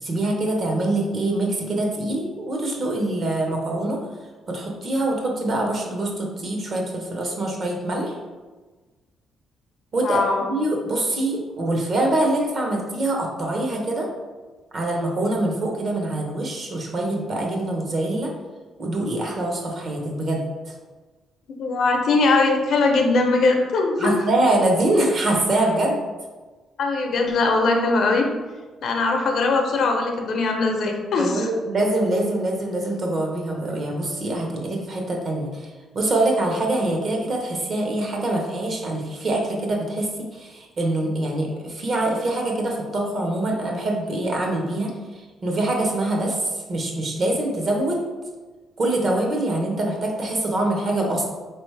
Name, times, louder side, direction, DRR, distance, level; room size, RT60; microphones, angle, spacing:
voice 1, 0.0-4.0 4.5-8.1 9.9-14.1 14.7-18.3 18.8-20.7 24.0-26.0 31.2-48.0 48.8-51.2, right 1 dB, 50° right, 0 dB, 0.9 m, -24 dB
voice 2, 10.0-10.5 21.6-24.2 26.8-28.3 28.8-31.5, left 3 dB, 65° left, 2 dB, 0.7 m, -21 dB
3.9 x 3.0 x 3.2 m, 1.3 s
cardioid pair, 90°, 0 cm